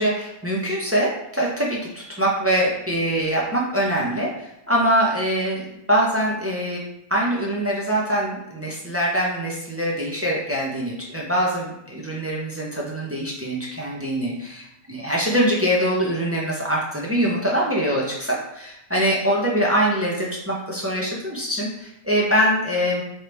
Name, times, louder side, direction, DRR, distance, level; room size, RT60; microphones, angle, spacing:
voice 1, 0.0-6.8 7.1-14.3 14.9-23.0, equal, 25° right, -3 dB, 0.3 m, -23 dB
4.5 x 3.1 x 3.2 m, 0.81 s
omnidirectional pair, 1.5 m